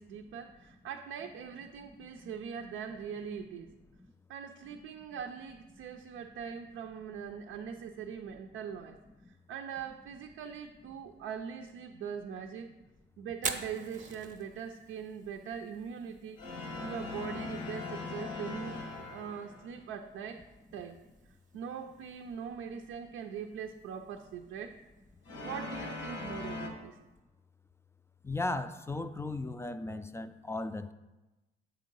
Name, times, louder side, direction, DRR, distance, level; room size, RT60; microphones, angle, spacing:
voice 1, 0.0-3.7 4.3-9.0 9.5-12.7 13.2-18.8 19.1-20.4 20.7-21.0 21.5-24.8 25.4-27.0, right 7 dB, 85° right, 3 dB, 0.5 m, -42 dB
Fire, 13.3-27.2, right 5 dB, 40° right, 0.7 m, -48 dB
sound 1, 16.3-19.7 25.2-26.7, left 3 dB, 90° left, 1.3 m, -40 dB
voice 2, 28.2-30.9, left 2 dB, 15° left, 10 dB, 0.4 m, -36 dB
7.9 x 3.7 x 5.3 m, 1.1 s
cardioid pair, 90°, 20 cm